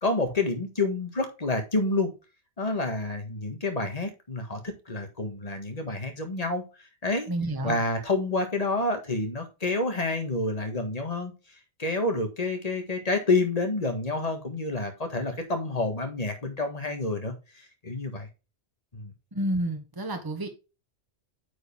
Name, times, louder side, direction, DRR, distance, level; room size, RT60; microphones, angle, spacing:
voice 1, 0.0-2.1 2.6-6.6 7.0-7.3 7.6-11.3 11.8-17.3 17.8-18.3 18.9-19.1, left 2 dB, 35° left, 1.7 m, -28 dB
voice 2, 7.3-7.8 19.3-20.5, right 1 dB, 20° right, 1.3 m, -29 dB
9.1 x 4.9 x 3.4 m
omnidirectional pair, 1.1 m